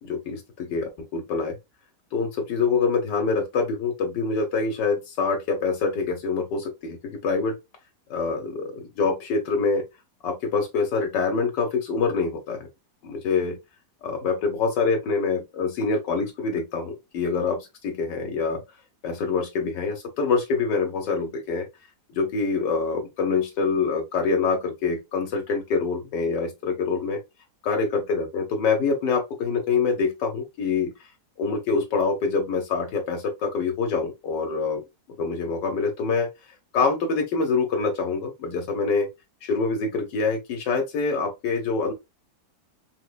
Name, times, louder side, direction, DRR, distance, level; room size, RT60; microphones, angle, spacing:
voice 1, 0.0-1.5 2.1-7.6 8.1-9.8 10.2-12.7 13.0-13.6 14.0-18.6 19.0-21.7 22.1-27.2 27.6-30.9 31.4-34.8 35.2-36.3 36.7-39.1 39.4-41.9, left 4 dB, 85° left, 1.5 m, -25 dB
3.8 x 2.9 x 2.3 m
omnidirectional pair, 1.8 m